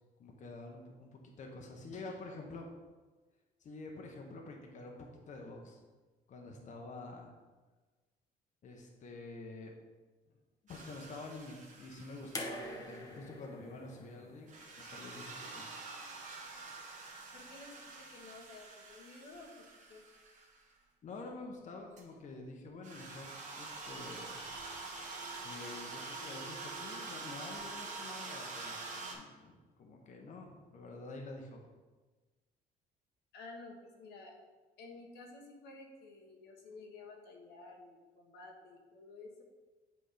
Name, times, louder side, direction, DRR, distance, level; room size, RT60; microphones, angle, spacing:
voice 1, 0.2-2.6 3.6-5.8 6.3-7.4 8.6-9.7 10.6-15.7 21.0-24.7 25.4-31.7, left 3 dB, 45° left, 1 dB, 1.0 m, -48 dB
sound 1, 10.7-13.2 14.5-20.6 22.0-22.1 22.8-29.1, right 3 dB, 45° right, 1.4 m, -46 dB
sound 2, 12.3-15.5 16.7-16.8, left 1 dB, 20° left, 1.0 m, -46 dB
voice 2, 17.3-19.5 19.9-20.0 33.3-34.3 34.8-39.4, left 3 dB, 75° left, 1 dB, 1.2 m, -52 dB
8.0 x 3.5 x 5.0 m, 1.3 s
cardioid pair, 110°, 17 cm